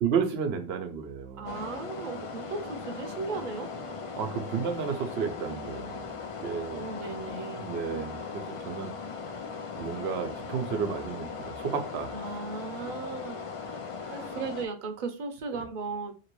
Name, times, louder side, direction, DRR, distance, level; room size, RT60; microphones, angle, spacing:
voice 1, 0.0-1.7 4.1-6.8 7.6-8.9 9.8-12.1 14.0-14.3, right 6 dB, 85° right, 0.9 m, -32 dB
voice 2, 1.4-3.7 6.8-7.6 12.1-13.7 14.1-16.1, right 4 dB, 55° right, 0.7 m, -36 dB
sound 1, 1.5-14.7, left 5 dB, 50° left, 0.4 m, -39 dB
2.9 x 2.9 x 3.0 m
omnidirectional pair, 1.0 m